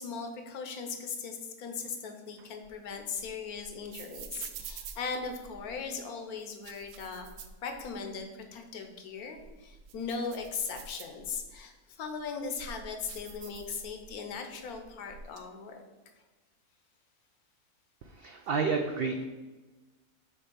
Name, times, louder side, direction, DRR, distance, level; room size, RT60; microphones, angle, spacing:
voice 1, 0.0-7.3 7.6-15.8, left 5 dB, 75° left, 5 dB, 1.3 m, -38 dB
sound 1, 2.4-5.8 6.4-8.2 8.6-8.7 9.2-11.6 12.1-14.3 14.6-15.4, right 6 dB, 65° right, 0.8 m, -47 dB
voice 2, 18.0-19.3, right 4 dB, 85° right, 4 dB, 0.5 m, -30 dB
6.9 x 3.3 x 5.4 m, 1.2 s
omnidirectional pair, 1.6 m